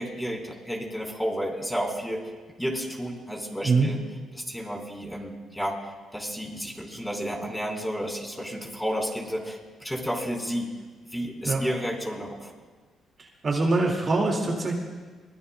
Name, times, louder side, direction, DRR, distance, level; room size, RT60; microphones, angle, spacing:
voice 1, 0.0-2.2 2.6-4.0 4.3-10.7 11.1-12.5, equal, 5° left, -1 dB, 3.7 m, -31 dB
voice 2, 13.2-14.7, right 3 dB, 40° right, 0 dB, 2.1 m, -24 dB
23.0 x 20.5 x 2.2 m, 1.4 s
cardioid pair, 90°, 0 cm